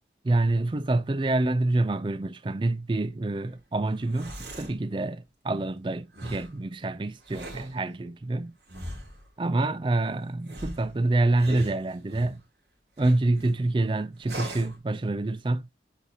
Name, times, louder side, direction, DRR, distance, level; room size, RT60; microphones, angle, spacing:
voice 1, 0.2-8.5 9.4-12.4 13.0-15.6, right 2 dB, 25° right, 0.4 m, -27 dB
sound 1, 3.9-4.8 6.1-6.5 7.2-7.8 8.7-9.3 10.4-12.4 13.0-13.5 14.2-14.8, right 1 dB, 70° right, 3.0 m, -40 dB
8.1 x 4.1 x 2.8 m
head